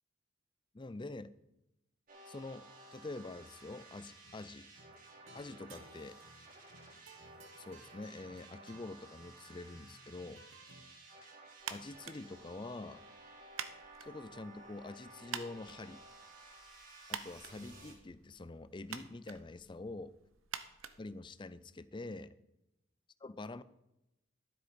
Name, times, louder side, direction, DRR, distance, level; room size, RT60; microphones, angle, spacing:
voice 1, 0.7-1.3 2.3-2.6 2.9-4.7 5.3-6.2 7.6-10.4 11.2-11.3 11.7-13.0 14.0-16.0 17.1-20.1 21.0-22.4 23.2-23.6, left 2 dB, 25° left, 16 dB, 0.5 m, -46 dB
sound 1, 2.1-17.9, right 2 dB, 45° right, 3.8 m, -55 dB
sound 2, 4.2-4.5 4.7-10.9, right 3 dB, 70° right, 1.5 m, -60 dB
sound 3, 11.6-21.8, right 8 dB, 85° right, 0.9 m, -49 dB
13.0 x 7.8 x 5.2 m, 0.89 s
head